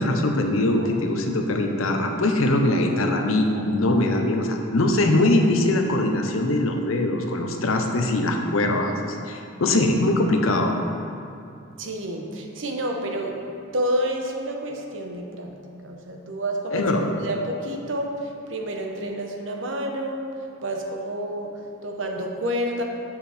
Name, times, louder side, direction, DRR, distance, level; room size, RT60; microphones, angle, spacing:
voice 1, 0.0-10.7 16.7-17.1, left 1 dB, 85° left, 3 dB, 0.8 m, -22 dB
voice 2, 11.8-13.4 13.7-15.5 15.8-16.9 17.2-22.8, right 1 dB, 65° right, 2 dB, 0.9 m, -29 dB
7.1 x 5.8 x 4.3 m, 2.6 s
head